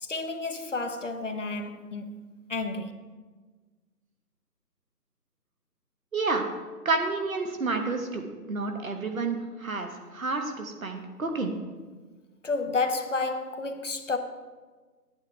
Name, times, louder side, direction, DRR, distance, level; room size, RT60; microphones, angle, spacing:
voice 1, 0.0-2.9 12.4-14.2, left 3 dB, 50° left, 0.7 m, -31 dB
voice 2, 6.1-6.5 6.8-11.5, right 3 dB, 55° right, 1.3 m, -30 dB
9.6 x 9.1 x 3.3 m
figure-of-eight pair, 170°, 49 cm